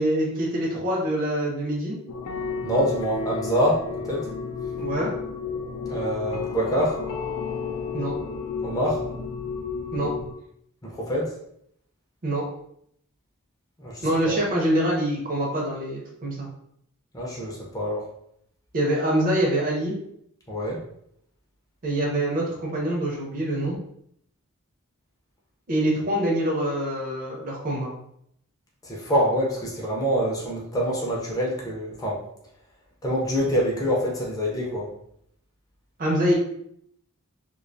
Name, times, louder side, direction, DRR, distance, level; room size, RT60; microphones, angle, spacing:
voice 1, 0.0-2.0 4.8-5.1 7.9-8.1 9.9-10.1 12.2-12.4 14.0-16.5 18.7-20.0 21.8-23.8 25.7-27.9 36.0-36.4, right 1 dB, 40° right, -3 dB, 0.5 m, -25 dB
sound 1, 2.1-10.3, left 5 dB, 85° left, 0.4 m, -32 dB
voice 2, 2.6-4.3 5.9-7.0 8.6-9.0 10.8-11.3 13.8-14.4 17.1-18.1 20.5-20.8 28.8-32.2 33.0-34.9, equal, 15° left, -4 dB, 0.4 m, -26 dB
2.3 x 2.2 x 2.5 m, 0.71 s
head